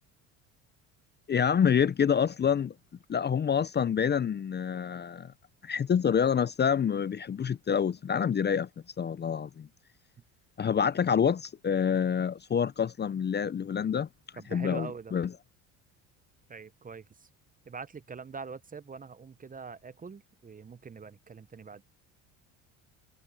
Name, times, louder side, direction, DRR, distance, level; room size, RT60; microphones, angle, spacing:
voice 1, 1.3-2.7 3.1-5.3 5.6-8.7 9.0-9.7 10.6-14.1 14.5-15.3, left 7 dB, 25° left, 0.7 m, -27 dB
voice 2, 14.4-15.1 16.5-17.3 17.6-21.8, right 5 dB, 20° right, 0.9 m, -43 dB
supercardioid pair, 80°, 37 cm